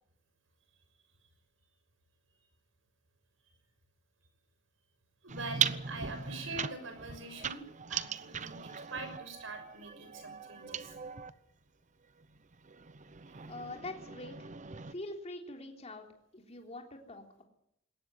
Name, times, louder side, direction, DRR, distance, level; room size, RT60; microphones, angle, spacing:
voice 1, 5.2-7.6 7.9-11.0 13.3-13.4, right 3 dB, 75° right, 9 dB, 6.3 m, -44 dB
sound 1, 5.3-11.3 12.2-14.9, right 7 dB, 40° right, 0.8 m, -39 dB
voice 2, 13.5-14.5 14.9-16.1 16.3-17.4, left 2 dB, 35° left, 2 dB, 3.6 m, -44 dB
21.0 x 18.0 x 9.3 m, 0.77 s
head